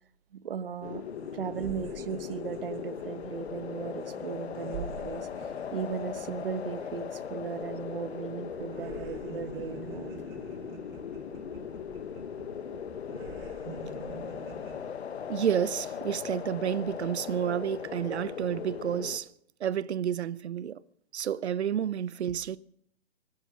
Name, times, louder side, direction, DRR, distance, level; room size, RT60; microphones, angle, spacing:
voice 1, 0.3-1.0 1.3-10.2, right 7 dB, 55° right, 1.0 m, -37 dB
sound 1, 0.8-19.2, left 7 dB, 75° left, 1.2 m, -39 dB
sound 2, 0.8-0.9 1.2-8.2 8.5-14.8, right 5 dB, 20° right, 1.6 m, -47 dB
voice 2, 15.3-19.3 19.6-20.8 21.1-22.6, right 9 dB, 80° right, 0.8 m, -30 dB
23.5 x 9.9 x 6.2 m
hypercardioid pair, 175°, 33 cm